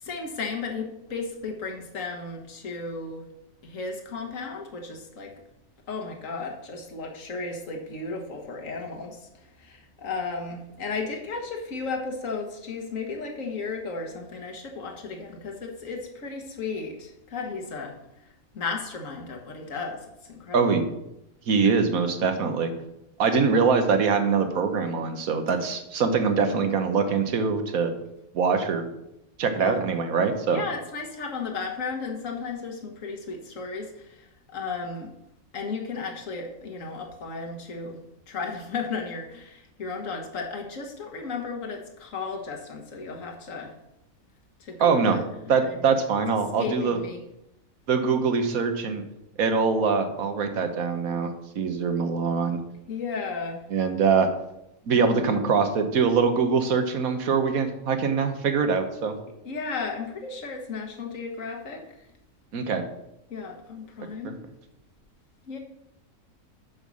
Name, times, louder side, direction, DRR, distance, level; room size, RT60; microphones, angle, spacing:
voice 1, 0.0-3.3 3.6-5.3 5.9-17.9 18.5-20.6 23.3-23.6 29.6-29.8 30.5-35.1 35.5-38.0 38.3-43.7 44.6-45.5 46.6-47.2 52.9-53.6 59.4-61.8 63.3-64.4 65.5-65.6, left 4 dB, 65° left, 3 dB, 1.8 m, -34 dB
voice 2, 20.5-20.8 21.5-22.7 23.2-27.9 28.3-28.8 29.4-30.6 44.8-45.2 45.5-47.0 47.9-49.0 49.4-52.6 53.7-54.3 54.9-59.2 62.5-62.8 64.2-64.3, right 5 dB, 85° right, 7 dB, 1.5 m, -23 dB
9.4 x 5.5 x 6.3 m, 0.85 s
omnidirectional pair, 1.4 m